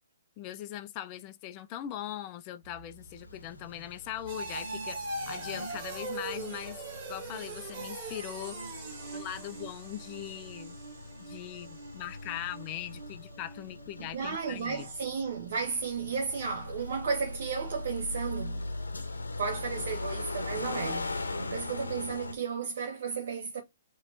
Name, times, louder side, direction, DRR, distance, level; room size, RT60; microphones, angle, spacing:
voice 1, 0.4-5.0 5.3-6.8 7.1-8.6 9.1-10.8 11.2-14.9, left 12 dB, 30° left, 0.4 m, -40 dB
sound 1, 2.6-15.3 15.7-16.1 16.5-16.6, right 2 dB, 35° right, 2.1 m, -42 dB
sound 2, 2.9-22.3, left 2 dB, 80° left, 0.8 m, -41 dB
voice 2, 14.0-18.7 19.0-19.1 19.4-23.6, right 5 dB, 55° right, 0.9 m, -34 dB
4.2 x 3.1 x 4.0 m
figure-of-eight pair, 130°, 0 cm